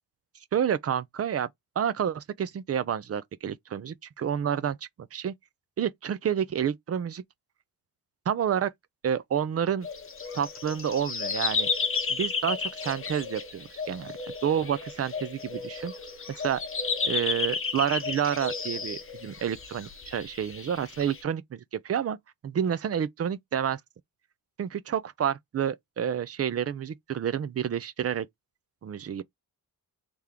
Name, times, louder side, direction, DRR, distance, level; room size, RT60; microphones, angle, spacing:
voice 1, 0.5-1.5 1.8-5.4 5.8-7.2 8.3-8.7 9.0-9.9 10.3-11.7 12.1-14.1 14.4-15.9 16.3-16.6 17.0-22.2 22.4-23.8 24.6-28.3 28.8-29.2, right 8 dB, 40° right, 0.5 m, -29 dB
sound 1, 9.8-21.2, left 5 dB, 35° left, 1.0 m, -33 dB
3.4 x 3.0 x 3.6 m
wide cardioid pair, 155°, 38 cm